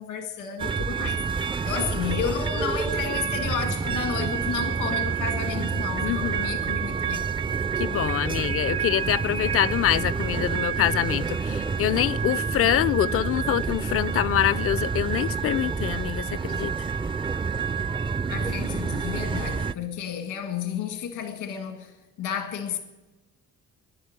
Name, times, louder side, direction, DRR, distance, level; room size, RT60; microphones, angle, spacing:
voice 1, 0.0-7.3 18.3-22.8, left 8 dB, 85° left, 1.8 m, -32 dB
sound 1, 0.6-19.7, right 5 dB, 15° right, 0.4 m, -28 dB
voice 2, 6.0-6.6 7.8-16.9, left 12 dB, 50° left, 0.4 m, -25 dB
13.0 x 10.5 x 9.4 m
cardioid pair, 90°, 30 cm